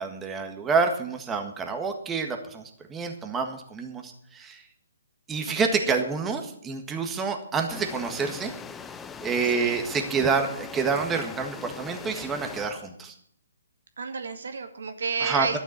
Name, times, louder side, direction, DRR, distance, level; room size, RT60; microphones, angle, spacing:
voice 1, 0.0-4.6 5.3-8.5 9.2-13.1 15.2-15.6, right 5 dB, 15° right, 4 dB, 1.6 m, -28 dB
sound 1, 7.7-12.7, left 6 dB, 10° left, 0.6 m, -41 dB
voice 2, 14.0-15.6, right 5 dB, 70° right, 7 dB, 1.7 m, -31 dB
12.5 x 7.3 x 8.6 m, 0.64 s
hypercardioid pair, 140°, 0 cm